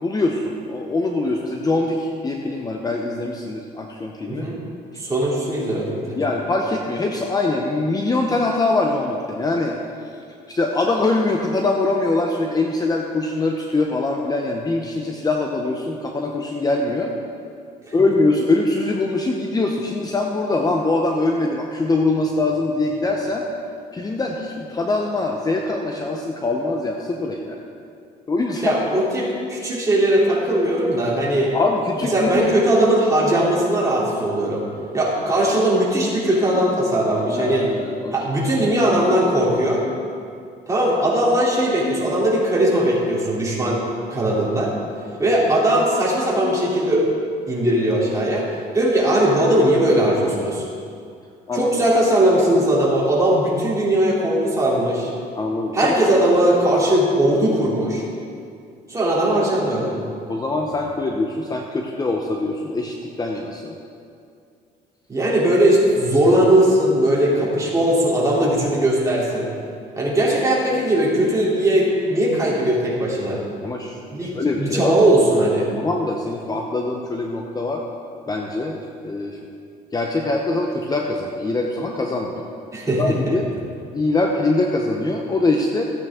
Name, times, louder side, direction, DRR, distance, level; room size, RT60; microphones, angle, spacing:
voice 1, 0.0-4.4 6.1-9.7 10.5-17.1 17.9-23.4 23.9-27.6 28.3-28.8 31.5-32.5 37.3-38.1 51.5-51.7 55.3-55.9 60.3-63.8 73.6-75.0 75.8-77.8 78.3-78.8 79.0-79.4 79.9-82.4 83.0-83.5 83.9-85.8, left 2 dB, 20° left, 1 dB, 0.8 m, -23 dB
voice 2, 4.3-4.6 5.0-6.2 17.9-18.0 28.6-31.5 32.1-34.6 34.9-37.7 38.1-39.8 40.7-43.8 44.1-44.7 45.2-47.0 47.5-48.5 48.7-50.7 51.5-55.1 55.7-58.0 58.9-59.9 65.1-69.5 70.0-73.4 74.1-75.7 82.7-83.3, right 1 dB, 20° right, -6 dB, 3.1 m, -19 dB
14.5 x 8.7 x 3.7 m, 2.4 s
cardioid pair, 110°, 17 cm